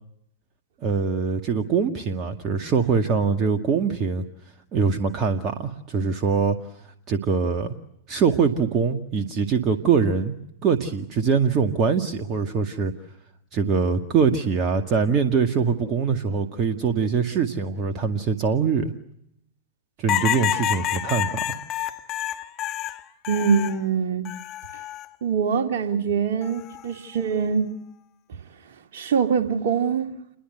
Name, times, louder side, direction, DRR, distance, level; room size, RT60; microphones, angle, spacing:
voice 1, 0.8-4.2 4.7-6.6 7.1-7.7 8.1-10.3 10.6-12.9 13.5-18.9 20.0-21.6, right 5 dB, 35° right, 2.0 m, -23 dB
sound 1, 20.1-23.8 24.2-25.0 26.4-26.8, left 13 dB, 35° left, 1.6 m, -28 dB
voice 2, 23.3-24.3 25.2-27.7 28.9-30.2, right 6 dB, 55° right, 2.9 m, -23 dB
29.0 x 22.5 x 8.1 m
figure-of-eight pair, 100°, 0 cm